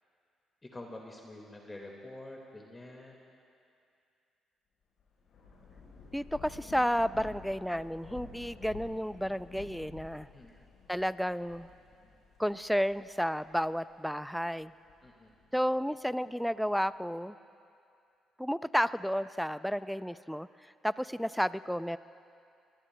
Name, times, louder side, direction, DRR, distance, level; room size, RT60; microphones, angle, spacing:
voice 1, 0.7-3.2 10.3-10.5 15.0-15.3, left 1 dB, 20° left, 0 dB, 1.9 m, -47 dB
Thunder / Rain, 5.0-13.9 14.4-15.8, left 4 dB, 70° left, 4.5 m, -51 dB
voice 2, 6.1-10.3 10.9-11.7 12.4-14.7 15.5-17.3 18.4-20.5 20.8-22.0, equal, ahead, 15 dB, 0.4 m, -32 dB
24.5 x 19.5 x 2.2 m, 2.5 s
supercardioid pair, 70°, 0 cm